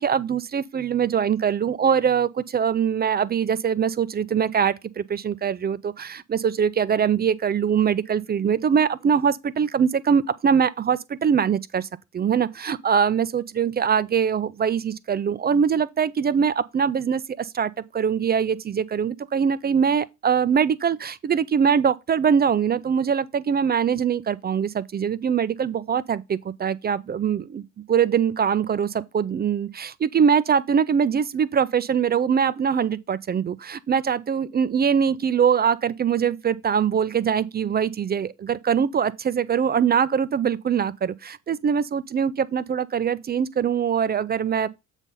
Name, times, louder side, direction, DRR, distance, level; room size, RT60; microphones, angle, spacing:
voice 1, 0.0-11.9 12.1-27.6 27.9-44.7, right 7 dB, 25° right, 0.5 m, -23 dB
8.0 x 4.0 x 5.4 m
figure-of-eight pair, 55°, 38 cm